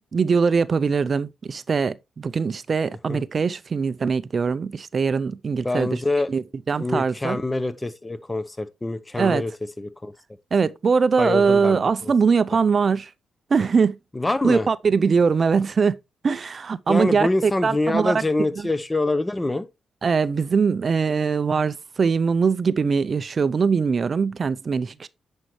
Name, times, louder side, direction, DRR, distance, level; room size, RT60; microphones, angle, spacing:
voice 1, 0.1-6.0 6.3-7.4 9.2-9.4 10.5-13.1 13.5-14.0 14.4-16.0 16.2-18.2 18.6-18.7 20.0-25.1, right 5 dB, 45° right, 0.5 m, -22 dB
voice 2, 5.6-6.3 6.8-9.5 9.8-10.1 11.2-11.8 14.1-14.7 16.9-19.7, left 2 dB, 15° left, 0.8 m, -25 dB
9.8 x 5.3 x 3.1 m
cardioid pair, 70°, 0 cm